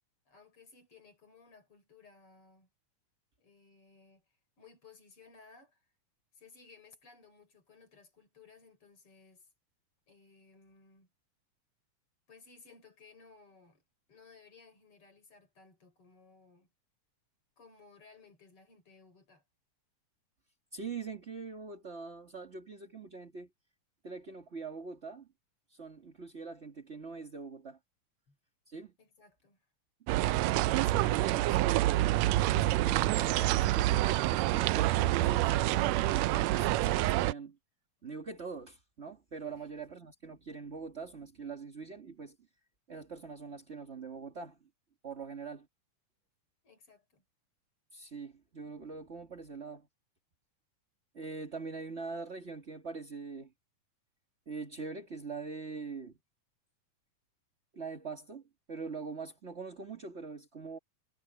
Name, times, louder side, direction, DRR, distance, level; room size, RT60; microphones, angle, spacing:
voice 1, 0.3-2.7 3.4-5.9 6.3-9.5 10.1-11.1 12.3-13.8 14.1-16.7 17.6-19.4 28.3-28.4 29.0-29.7 38.0-38.1 39.6-40.0 46.6-47.2, left 4 dB, 45° left, 5.1 m, -59 dB
voice 2, 20.7-23.5 24.0-25.3 25.7-27.8 28.7-28.9 30.3-31.6 32.5-37.6 38.0-42.3 42.9-44.7 45.0-45.7 47.9-49.9 51.1-53.5 54.4-56.1 57.7-60.8, right 4 dB, 25° right, 1.7 m, -43 dB
sound 1, 30.1-37.3, right 16 dB, 85° right, 1.5 m, -27 dB
omnidirectional pair, 3.6 m